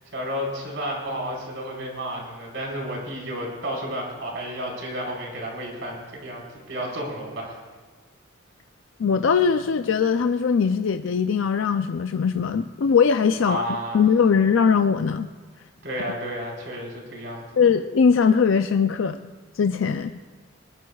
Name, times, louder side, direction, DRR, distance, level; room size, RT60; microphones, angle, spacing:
voice 1, 0.0-7.6 13.4-14.0 15.8-17.6, equal, 65° right, -2 dB, 4.6 m, -32 dB
voice 2, 9.0-13.6 13.9-15.3 17.6-19.3 19.6-20.2, left 6 dB, 75° left, 8 dB, 0.4 m, -20 dB
21.0 x 20.5 x 2.4 m, 1.4 s
head